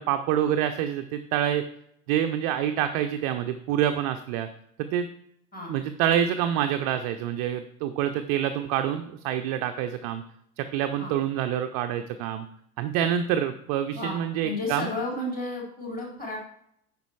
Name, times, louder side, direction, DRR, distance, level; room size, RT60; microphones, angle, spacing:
voice 1, 0.0-1.6 2.1-4.5 4.8-5.1 5.7-10.2 10.6-12.4 12.8-14.9, right 10 dB, 30° right, 8 dB, 0.4 m, -27 dB
voice 2, 14.4-16.4, left 2 dB, 20° left, -3 dB, 3.8 m, -32 dB
9.1 x 5.3 x 4.6 m, 0.71 s
figure-of-eight pair, 80°, 44 cm